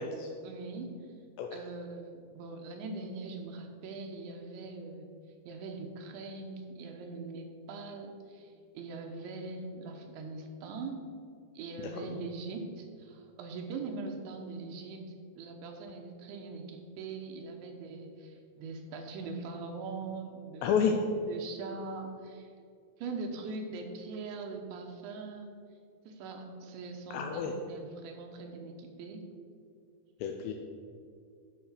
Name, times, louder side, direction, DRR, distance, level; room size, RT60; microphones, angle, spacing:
voice 1, 0.4-1.0 1.5-5.1 5.5-11.1 11.5-20.9 21.3-22.5 23.0-25.5 26.1-29.2, right 3 dB, 75° right, 3 dB, 3.1 m, -42 dB
voice 2, 20.6-20.9 27.1-27.5 30.2-30.5, left 7 dB, 85° left, 3 dB, 2.5 m, -29 dB
12.0 x 5.6 x 6.6 m, 2.3 s
omnidirectional pair, 5.7 m